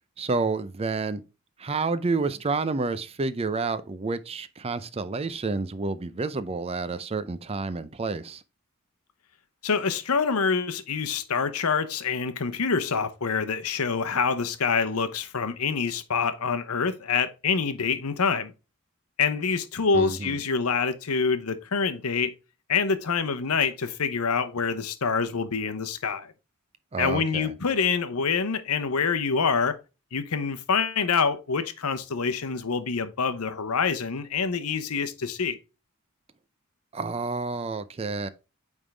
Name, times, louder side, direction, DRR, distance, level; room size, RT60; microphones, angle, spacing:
voice 1, 0.2-1.2 1.6-8.4 19.9-20.4 26.9-27.5 36.9-38.3, right 3 dB, 25° right, 0.5 m, -29 dB
voice 2, 9.6-18.5 19.2-22.3 22.7-26.3 27.0-29.8 30.1-35.6, left 5 dB, 80° left, 0.8 m, -26 dB
8.9 x 3.6 x 3.3 m
head